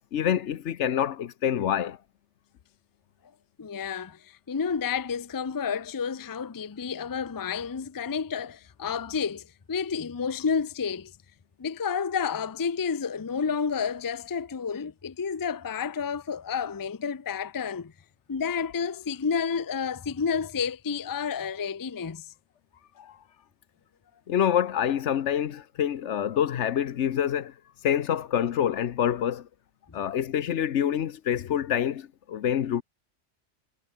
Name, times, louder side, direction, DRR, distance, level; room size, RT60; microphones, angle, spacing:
voice 1, 0.1-2.0 23.0-23.2 24.3-27.5 27.8-29.5 29.9-32.8, left 9 dB, 75° left, 1.1 m, -26 dB
voice 2, 3.6-11.1 11.6-17.9 18.3-22.3 29.9-30.0, left 6 dB, 25° left, 0.5 m, -30 dB
omnidirectional pair, 1.2 m